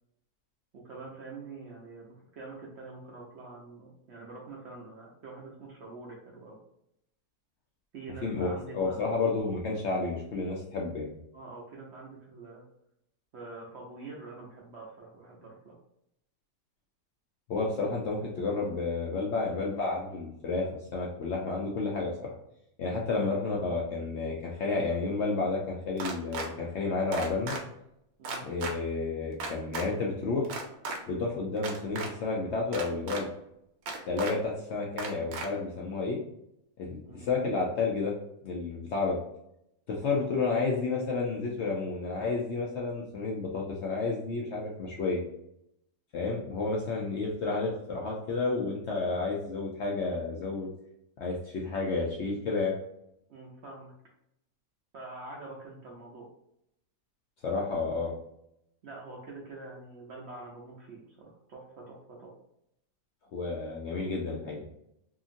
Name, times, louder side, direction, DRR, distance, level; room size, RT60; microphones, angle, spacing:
voice 1, 0.7-6.6 7.9-9.2 11.3-12.6 13.3-15.8 23.1-23.3 28.2-28.4 37.0-37.3 53.3-53.9 54.9-56.3 58.8-62.3, right 3 dB, 65° right, -2 dB, 0.7 m, -46 dB
voice 2, 8.2-11.1 17.5-22.1 22.8-27.6 28.4-30.5 31.1-33.3 34.1-36.2 36.8-38.1 38.4-39.2 39.9-45.2 46.1-50.7 51.2-52.8 57.4-58.1 63.3-64.6, left 3 dB, 65° left, -2 dB, 0.7 m, -31 dB
sound 1, 26.0-26.5 27.1-27.6 28.2-28.7 29.4-29.8 30.4-31.0 31.6-32.1 32.7-33.2 33.9-34.3 35.0-35.5, right 3 dB, 90° right, 1.1 m, -35 dB
2.8 x 2.5 x 2.5 m, 0.79 s
omnidirectional pair, 1.6 m